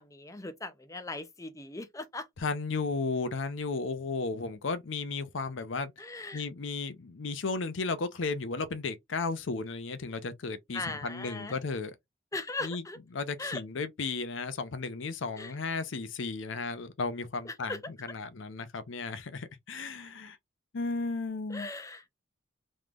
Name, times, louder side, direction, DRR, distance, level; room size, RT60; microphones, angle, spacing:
voice 1, 0.0-2.3 6.0-6.5 10.7-11.6 12.3-13.0 13.4-13.6 15.4-15.5 17.4-17.8 21.5-22.1, left 2 dB, 15° left, 0.5 m, -39 dB
voice 2, 2.4-5.9 6.3-11.9 12.6-12.8 13.1-20.4 20.7-21.7, left 4 dB, 65° left, 0.6 m, -34 dB
3.5 x 3.1 x 2.4 m
head